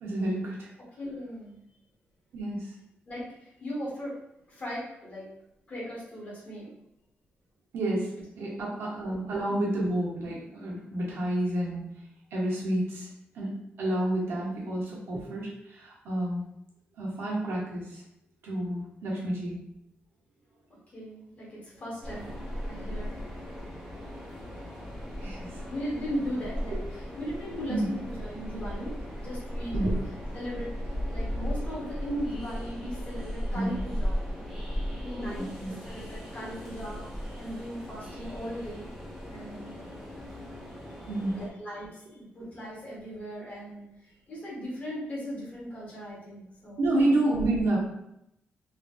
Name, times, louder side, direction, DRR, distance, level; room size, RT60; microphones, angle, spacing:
voice 1, 0.0-0.7 2.3-2.7 7.7-11.8 12.3-13.1 13.3-16.4 17.0-18.0 18.4-19.6 25.2-25.5 27.7-27.9 29.7-30.0 33.5-33.8 35.2-35.8 41.1-41.4 46.8-47.8, right 1 dB, 90° right, -5 dB, 1.0 m, -29 dB
voice 2, 1.0-1.6 3.1-4.2 4.5-5.3 5.7-6.7 8.6-8.7 9.0-9.1 9.4-9.6 20.9-22.4 22.6-23.1 25.7-28.9 29.2-29.9 30.3-34.6 35.0-38.9 39.3-39.8 40.9-46.9, equal, 40° left, -6 dB, 1.3 m, -38 dB
Train, 22.0-41.5, equal, ahead, 0.6 m, -36 dB
3.2 x 2.6 x 2.3 m, 0.81 s
wide cardioid pair, 165°, 4 cm